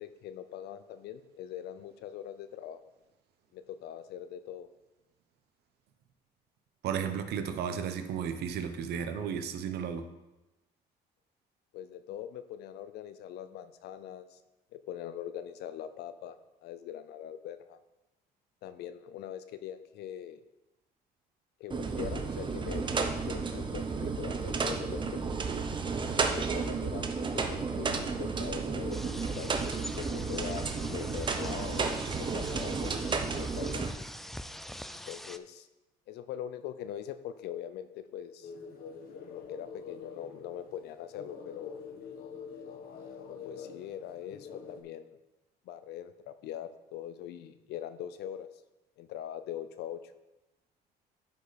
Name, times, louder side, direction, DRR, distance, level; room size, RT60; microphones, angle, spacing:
voice 1, 0.0-2.8 3.5-4.7 11.7-14.4 14.7-17.8 18.6-20.4 21.6-25.2 26.1-29.6 30.0-33.8 35.1-35.7 36.1-38.5 39.3-41.8 43.2-45.1 45.7-48.5 49.0-50.1, left 10 dB, 80° left, 12 dB, 0.6 m, -42 dB
voice 2, 6.8-10.0, right 7 dB, 75° right, 8 dB, 0.9 m, -34 dB
sound 1, 21.7-33.9, right 4 dB, 30° right, 0.8 m, -32 dB
sound 2, 28.9-35.4, equal, ahead, 0.3 m, -44 dB
sound 3, 38.4-44.8, left 5 dB, 60° left, 1.1 m, -46 dB
10.5 x 5.3 x 4.1 m, 1.0 s
cardioid pair, 110°, 17 cm